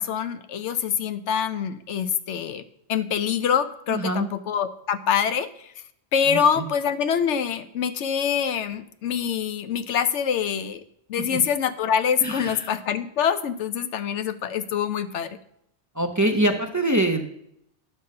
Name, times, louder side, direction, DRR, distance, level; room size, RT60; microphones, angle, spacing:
voice 1, 0.0-2.6 2.9-5.7 6.1-10.8 11.1-15.4, left 7 dB, 80° left, 12 dB, 1.0 m, -25 dB
voice 2, 3.9-4.3 6.3-6.4 11.3-11.4 12.2-12.7 16.0-17.2, right 1 dB, 20° right, 5 dB, 0.6 m, -24 dB
9.5 x 5.5 x 6.5 m, 0.75 s
omnidirectional pair, 1.2 m